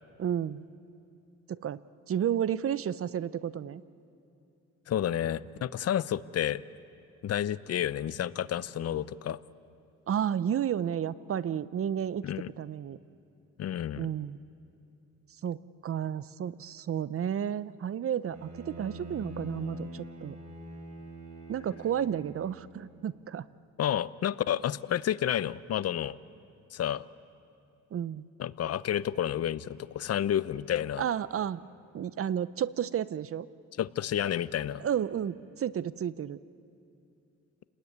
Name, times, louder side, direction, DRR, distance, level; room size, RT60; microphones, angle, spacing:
voice 1, 0.2-0.6 1.5-1.8 2.1-3.8 10.1-12.3 12.6-13.0 14.0-14.4 15.4-20.4 21.5-23.4 27.9-28.2 31.0-31.6 31.9-33.5 34.8-36.4, right 9 dB, 50° right, 17 dB, 0.7 m, -32 dB
voice 2, 4.9-6.6 7.2-9.4 12.2-12.5 13.6-14.1 23.8-26.2 26.7-27.0 28.4-31.0 33.8-34.9, left 10 dB, 55° left, 17 dB, 0.7 m, -30 dB
Bowed string instrument, 18.3-22.7, equal, 70° right, 7.7 m, -44 dB
29.5 x 20.5 x 9.6 m, 2.7 s
cardioid pair, 90°, 30 cm